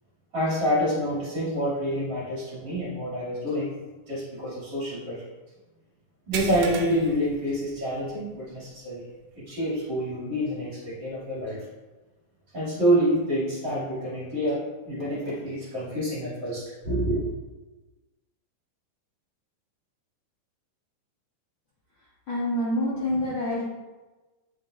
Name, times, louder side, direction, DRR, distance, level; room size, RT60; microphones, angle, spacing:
voice 1, 0.3-3.7 4.1-5.2 6.3-9.0 9.3-11.6 12.5-14.6 14.8-17.3, equal, 30° right, -9 dB, 2.6 m, -27 dB
sound 1, 6.3-8.2 8.6-8.8 9.2-9.3 11.0-11.1, right 5 dB, 85° right, 2.6 m, -37 dB
voice 2, 22.3-23.6, left 1 dB, 85° left, -9 dB, 1.1 m, -26 dB
9.5 x 5.6 x 2.5 m, 1.2 s
omnidirectional pair, 4.6 m